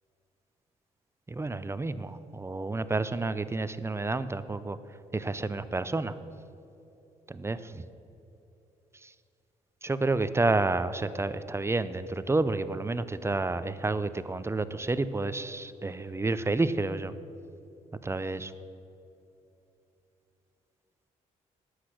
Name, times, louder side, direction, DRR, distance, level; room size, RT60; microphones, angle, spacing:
voice 1, 1.3-4.8 5.1-6.1 7.3-7.9 9.0-9.1 9.8-17.1 18.0-18.5, right 3 dB, 20° right, 13 dB, 0.6 m, -30 dB
12.0 x 8.3 x 6.4 m, 2.9 s
supercardioid pair, 60°, 14 cm